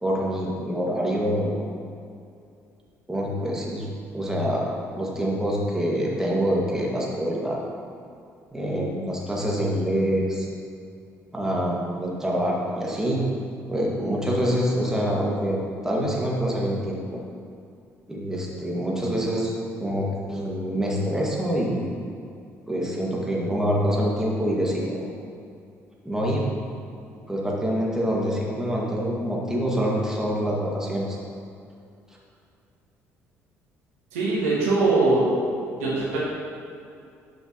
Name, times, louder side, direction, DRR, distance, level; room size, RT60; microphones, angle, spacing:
voice 1, 0.0-1.7 3.1-3.9 4.1-4.7 4.9-7.6 8.5-10.5 11.3-13.3 13.7-15.6 15.8-17.2 18.1-19.5 19.8-21.9 22.7-25.1 26.1-26.5 27.3-31.2, equal, 5° right, -4 dB, 2.0 m, -25 dB
voice 2, 34.1-35.2 35.8-36.2, right 3 dB, 75° right, -6 dB, 2.0 m, -21 dB
12.0 x 6.6 x 3.0 m, 2.5 s
figure-of-eight pair, 50°, 8 cm